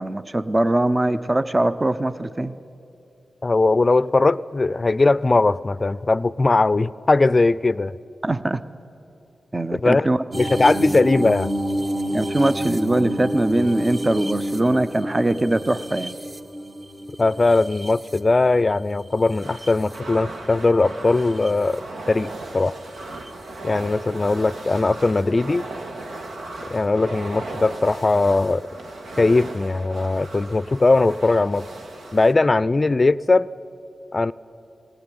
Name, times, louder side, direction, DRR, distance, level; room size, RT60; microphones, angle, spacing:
voice 1, 0.0-2.6 8.2-8.6 9.5-10.2 12.1-16.1, right 1 dB, 25° right, 13 dB, 0.7 m, -21 dB
voice 2, 3.4-7.9 9.7-10.1 10.3-11.5 17.2-21.8 22.1-22.8 23.6-25.6 26.7-28.6 29.2-31.6 32.1-33.5 34.1-34.3, left 3 dB, 40° left, 19 dB, 0.5 m, -19 dB
sound 1, 10.3-18.6 19.2-20.0 21.2-21.5 23.3-23.4, right 1 dB, 45° right, 1.8 m, -29 dB
sound 2, 19.4-32.3, right 2 dB, 85° right, 1.8 m, -37 dB
19.0 x 17.0 x 10.0 m, 2.7 s
cardioid pair, 50°, 0 cm